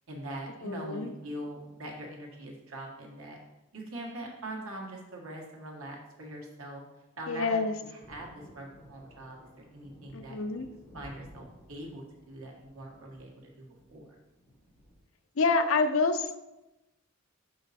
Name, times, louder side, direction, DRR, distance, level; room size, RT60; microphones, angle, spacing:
voice 1, 0.1-3.4 3.7-6.8 7.2-7.6 7.9-8.3 8.5-10.6 10.9-14.2, right 1 dB, 90° right, 0 dB, 1.6 m, -42 dB
voice 2, 0.6-1.1 7.3-7.8 10.1-10.7 15.4-16.3, left 4 dB, 70° left, 9 dB, 0.6 m, -27 dB
Thunder, 8.0-15.0, equal, 15° left, 1.2 m, -55 dB
5.6 x 5.4 x 4.2 m, 0.98 s
head